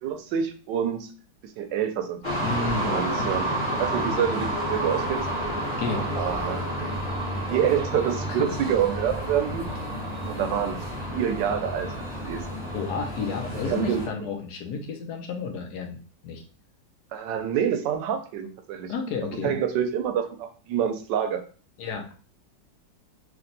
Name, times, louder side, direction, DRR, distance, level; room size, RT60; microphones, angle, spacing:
voice 1, 0.0-1.1 1.4-2.2 2.8-3.5 3.8-5.3 5.9-6.9 7.3-9.7 10.3-10.9 11.1-11.9 12.2-12.4 13.7-14.3 17.1-18.9 19.3-21.4, right 8 dB, 80° right, 7 dB, 1.3 m, -27 dB
sound 1, 2.2-14.1, right 1 dB, 25° left, 1.3 m, -30 dB
voice 2, 2.4-3.3 5.8-6.3 6.8-6.9 8.3-8.5 12.7-16.0 16.2-16.4 18.9-19.6 21.8-22.1, left 4 dB, 70° left, 4 dB, 1.2 m, -32 dB
3.4 x 3.2 x 3.9 m, 0.39 s
omnidirectional pair, 1.9 m